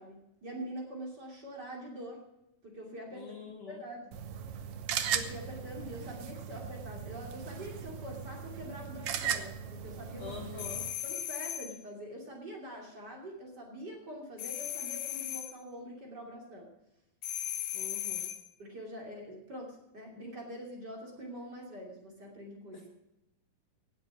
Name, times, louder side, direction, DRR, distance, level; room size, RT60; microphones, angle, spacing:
voice 1, 0.0-2.2 2.6-4.1 5.1-10.3 11.0-16.7 18.6-22.9, equal, 30° right, 0 dB, 3.1 m, -44 dB
voice 2, 3.1-3.8 10.2-10.9 17.7-18.3 22.7-22.9, left 6 dB, 55° left, 2 dB, 2.2 m, -45 dB
sound 1, 4.1-10.9, right 8 dB, 75° right, 1.4 m, -38 dB
sound 2, 10.6-11.8 14.4-15.6 17.2-18.5, left 11 dB, 70° left, 2.3 m, -37 dB
18.0 x 7.3 x 6.1 m, 0.91 s
omnidirectional pair, 4.0 m